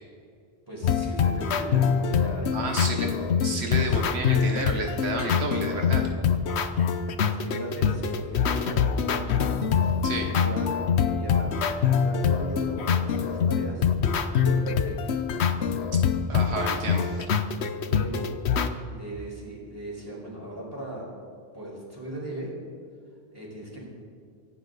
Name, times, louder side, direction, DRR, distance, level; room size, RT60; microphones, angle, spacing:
voice 1, 0.7-3.2 3.8-4.2 6.9-11.6 11.9-13.8 14.1-15.1 17.8-18.2 18.9-21.1 21.5-22.5 23.3-23.9, right 1 dB, 20° right, -4 dB, 4.8 m, -38 dB
sound 1, 0.8-18.7, left 7 dB, 85° left, 1.1 m, -25 dB
voice 2, 2.5-3.1 3.4-6.1 10.0-10.3 16.3-17.3, right 3 dB, 80° right, 3 dB, 1.4 m, -31 dB
25.0 x 11.5 x 4.0 m, 2.2 s
omnidirectional pair, 1.1 m